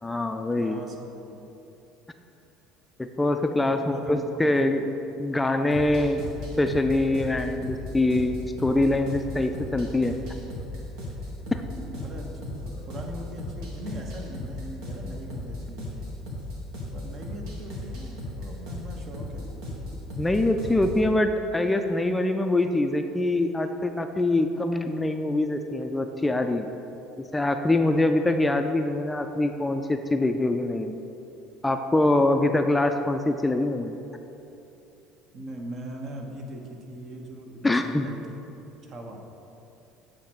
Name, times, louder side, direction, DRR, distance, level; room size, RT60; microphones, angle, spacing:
voice 1, 0.0-0.8 3.0-4.8 5.2-6.2 6.6-10.2 11.5-11.6 20.2-26.7 27.2-31.0 31.6-33.9 37.6-38.1, left 2 dB, 15° left, 6 dB, 0.4 m, -24 dB
voice 2, 0.5-1.5 3.6-4.9 11.7-16.1 16.9-19.5 35.3-39.3, right 1 dB, 50° right, 2 dB, 1.0 m, -40 dB
sound 1, 5.7-21.1, left 1 dB, 75° right, 1.4 m, -36 dB
8.0 x 3.2 x 6.0 m, 2.9 s
hypercardioid pair, 75°, 0 cm